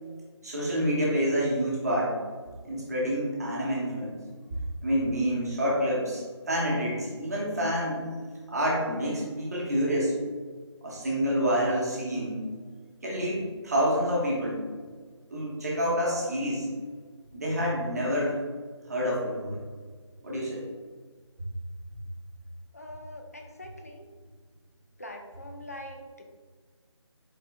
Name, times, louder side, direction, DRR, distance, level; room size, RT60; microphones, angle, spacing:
voice 1, 0.4-2.1 2.6-4.1 4.8-8.0 8.5-10.1 10.8-12.4 13.0-14.6 15.3-16.7 17.3-18.4 18.9-19.6 20.2-20.6, equal, 30° right, -5 dB, 1.0 m, -28 dB
voice 2, 22.7-24.1 25.0-26.2, left 1 dB, 30° left, 3 dB, 0.4 m, -43 dB
4.3 x 3.2 x 3.4 m, 1.5 s
figure-of-eight pair, 165°, 16 cm